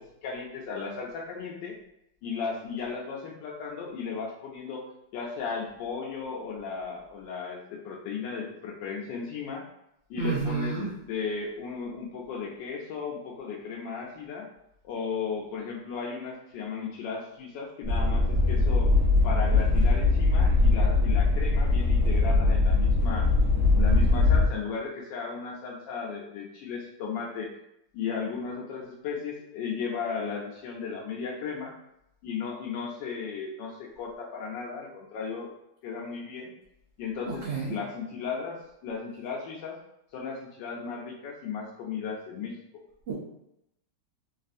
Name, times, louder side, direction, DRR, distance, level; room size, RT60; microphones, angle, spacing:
voice 1, 0.0-1.8 2.2-4.8 5.1-9.6 10.1-14.5 14.8-18.9 19.2-23.3 23.7-27.5 27.9-31.7 32.2-35.5 35.8-36.5 37.0-37.4 37.7-39.8 40.1-42.5, left 5 dB, 85° left, -3 dB, 1.2 m, -35 dB
voice 2, 10.2-10.9 37.3-37.8 43.1-43.2, right 5 dB, 75° right, -6 dB, 0.6 m, -30 dB
sound 1, 17.8-24.5, left 3 dB, 50° right, 1.0 m, -21 dB
3.3 x 2.4 x 2.5 m, 0.81 s
omnidirectional pair, 1.9 m